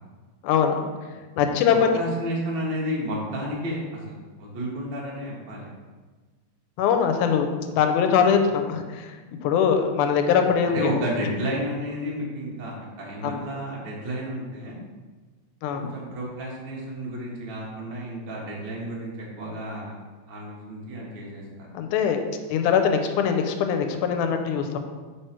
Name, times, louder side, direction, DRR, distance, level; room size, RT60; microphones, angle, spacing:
voice 1, 0.4-0.9 1.4-1.9 6.8-9.1 9.4-10.9 13.2-13.4 15.6-16.0 21.7-22.2 22.5-24.8, left 7 dB, 90° left, 6 dB, 2.1 m, -22 dB
voice 2, 1.7-5.7 10.6-14.8 15.7-19.9 20.3-21.7, equal, 55° right, -4 dB, 1.3 m, -32 dB
4.7 x 4.6 x 4.4 m, 1.4 s
omnidirectional pair, 3.5 m